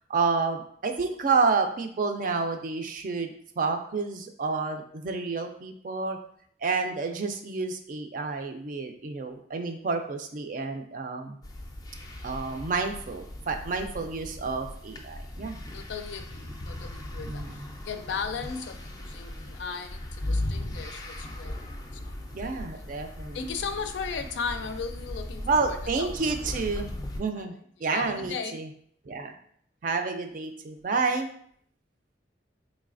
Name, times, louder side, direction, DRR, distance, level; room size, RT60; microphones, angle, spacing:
voice 1, 0.1-6.2 6.6-11.4 12.2-15.6 17.2-17.7 22.3-23.4 25.4-27.5 27.8-28.7 29.1-29.3 29.8-31.3, right 4 dB, 50° right, 6 dB, 0.4 m, -29 dB
sound 1, 11.4-27.2, left 1 dB, 20° left, 0.4 m, -38 dB
voice 2, 15.7-22.2 22.7-22.9 23.3-26.6 27.4-27.5 27.8-28.7, left 5 dB, 90° left, 8 dB, 0.4 m, -37 dB
3.9 x 3.1 x 2.5 m, 0.64 s
head